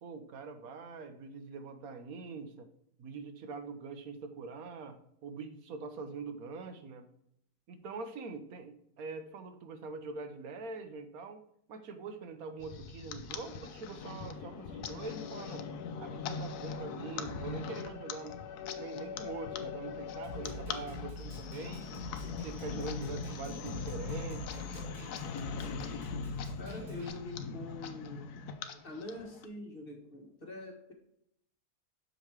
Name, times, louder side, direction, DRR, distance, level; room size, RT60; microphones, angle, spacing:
voice 1, 0.0-2.7 3.0-7.0 7.7-11.4 11.7-15.7 16.0-18.4 18.8-22.1 22.4-24.9, right 4 dB, 65° right, 8 dB, 1.3 m, -44 dB
sound 1, 12.6-29.5, left 5 dB, 75° left, 1.2 m, -41 dB
Snare drum, 20.2-27.1, left 1 dB, 45° right, 1.5 m, -47 dB
voice 2, 26.6-28.3 28.8-30.9, left 2 dB, 35° left, 1 dB, 1.5 m, -44 dB
6.6 x 5.2 x 4.6 m, 0.73 s
omnidirectional pair, 1.7 m